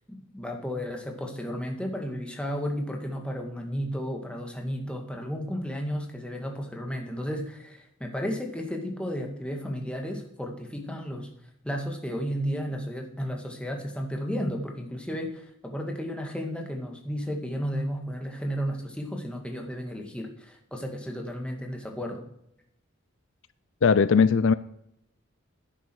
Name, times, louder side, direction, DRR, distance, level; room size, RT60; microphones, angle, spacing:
voice 1, 0.1-11.3 11.6-22.2, equal, 5° left, 2 dB, 2.1 m, -33 dB
voice 2, 23.8-24.5, left 5 dB, 60° left, 16 dB, 0.4 m, -19 dB
11.0 x 10.5 x 6.3 m, 0.78 s
head